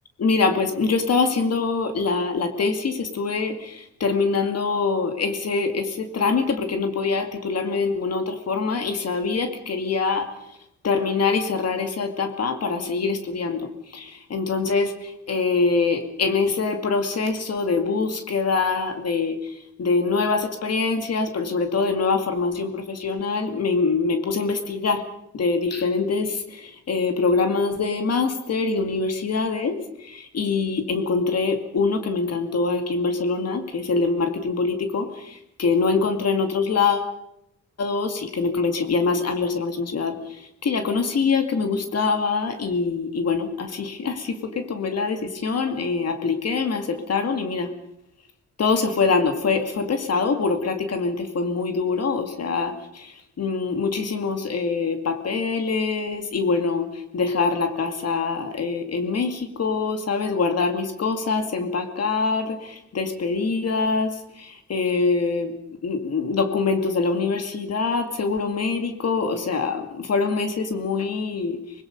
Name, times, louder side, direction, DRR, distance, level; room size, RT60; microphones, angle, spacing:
voice 1, 0.2-10.3 10.8-25.0 25.3-37.1 37.8-47.7 48.6-65.5 65.8-71.6, left 4 dB, 55° left, 6 dB, 2.4 m, -24 dB
25.5 x 20.5 x 5.4 m, 0.80 s
wide cardioid pair, 150°, 30 cm